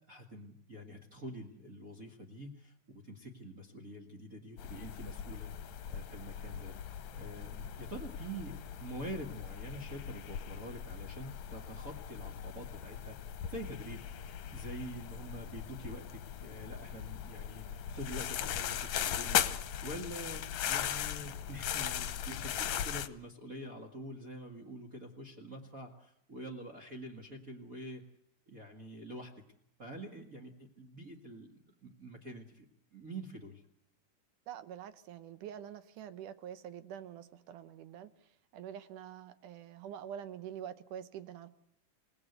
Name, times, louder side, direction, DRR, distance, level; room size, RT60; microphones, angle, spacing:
voice 1, 0.1-5.5 5.9-13.2 13.5-14.0 14.5-28.0 28.5-29.3 29.8-33.6, right 1 dB, 30° right, 1 dB, 1.8 m, -46 dB
sound 1, 4.6-23.1, left 10 dB, 65° left, 2.1 m, -39 dB
voice 2, 34.5-41.5, right 9 dB, 75° right, 12 dB, 2.5 m, -46 dB
28.0 x 17.0 x 8.2 m, 0.77 s
omnidirectional pair, 3.8 m